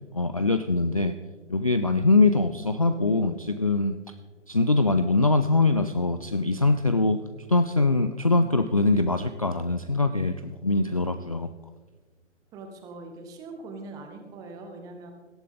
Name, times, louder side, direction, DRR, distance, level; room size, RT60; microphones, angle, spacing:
voice 1, 0.1-1.2 1.5-4.0 4.5-7.2 7.5-11.5, left 3 dB, 30° left, 10 dB, 0.4 m, -23 dB
voice 2, 12.5-15.1, right 3 dB, 10° right, 5 dB, 1.0 m, -42 dB
18.0 x 12.5 x 3.8 m, 1.4 s
figure-of-eight pair, 135°, 37 cm